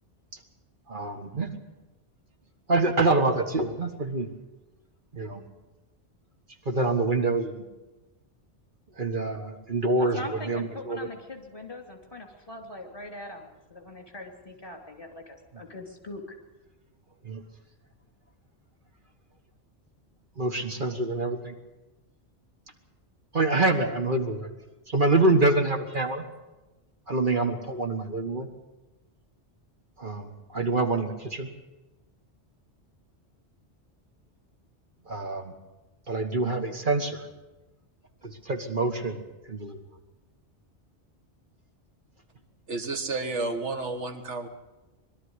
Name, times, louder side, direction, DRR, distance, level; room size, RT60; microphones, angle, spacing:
voice 1, 0.9-1.5 2.7-4.3 5.1-5.4 6.7-7.6 9.0-10.2 10.5-11.1 17.2-17.4 20.4-21.6 23.3-24.5 24.9-26.2 27.1-28.5 30.0-31.5 35.1-35.5 36.1-37.3 38.2-39.2 39.5-39.8, right 2 dB, 45° right, 5 dB, 1.7 m, -26 dB
voice 2, 10.0-16.2, left 1 dB, 30° left, 3 dB, 3.0 m, -41 dB
voice 3, 42.7-44.5, right 3 dB, 85° right, 7 dB, 1.9 m, -31 dB
21.5 x 12.5 x 9.7 m, 1.1 s
omnidirectional pair, 1.2 m